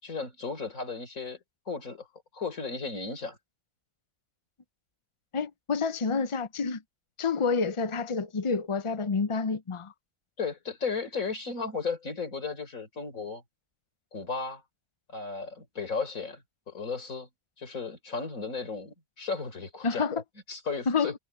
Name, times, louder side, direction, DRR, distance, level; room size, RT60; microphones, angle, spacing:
voice 1, 0.0-1.4 1.7-2.1 2.3-3.4 10.4-13.4 14.1-14.6 15.1-17.3 17.6-20.2 20.5-21.1, left 4 dB, 70° left, 4.5 m, -35 dB
voice 2, 5.3-6.8 7.2-9.9 19.8-20.2 20.9-21.1, left 5 dB, 50° left, 0.4 m, -28 dB
omnidirectional pair, 1.5 m